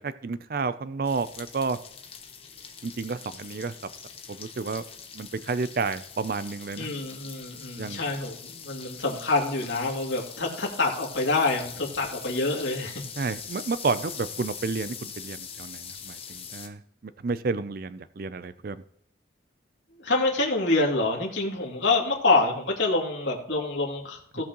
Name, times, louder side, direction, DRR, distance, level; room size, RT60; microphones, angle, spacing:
voice 1, 0.0-1.8 2.8-3.7 4.3-4.8 5.1-6.9 7.8-8.0 13.2-18.8 24.4-24.5, right 4 dB, 50° right, 14 dB, 0.4 m, -31 dB
sound 1, 1.0-16.7, left 7 dB, 30° left, 1.0 m, -42 dB
voice 2, 6.8-13.0 20.0-24.4, left 2 dB, 75° left, -1 dB, 2.5 m, -26 dB
17.5 x 6.1 x 3.0 m, 0.68 s
head